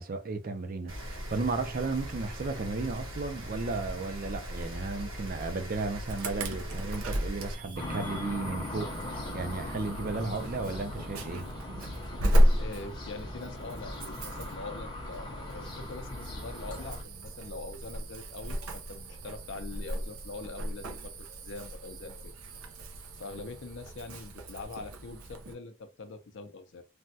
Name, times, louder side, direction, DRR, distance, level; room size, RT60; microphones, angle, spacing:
voice 1, 0.0-11.5, right 3 dB, 40° right, 0.4 m, -34 dB
Rain, 0.9-7.5, equal, 65° right, 1.1 m, -40 dB
Insect / Alarm, 6.1-25.5, equal, 90° right, 0.6 m, -33 dB
sound 1, 7.8-17.0, left 1 dB, 25° left, 0.7 m, -40 dB
voice 2, 12.6-22.3 23.1-26.8, left 3 dB, 60° left, 0.5 m, -43 dB
3.3 x 2.2 x 2.6 m
head